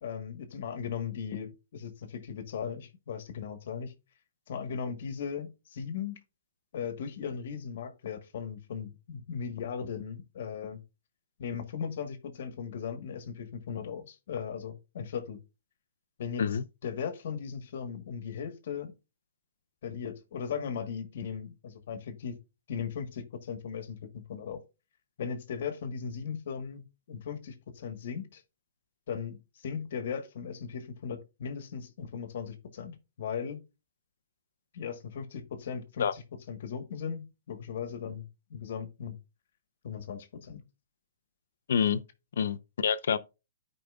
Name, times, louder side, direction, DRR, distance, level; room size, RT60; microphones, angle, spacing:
voice 1, 0.0-3.9 4.5-6.2 6.7-10.8 11.4-15.4 16.2-16.5 16.8-18.9 19.8-22.4 22.7-24.0 24.3-24.6 25.2-28.4 29.1-33.6 34.7-39.2 39.8-40.6, left 7 dB, 60° left, 1.4 m, -37 dB
voice 2, 41.7-42.0 42.4-43.2, left 7 dB, 75° left, 0.7 m, -27 dB
13.0 x 5.1 x 2.4 m
hypercardioid pair, 165°, 0 cm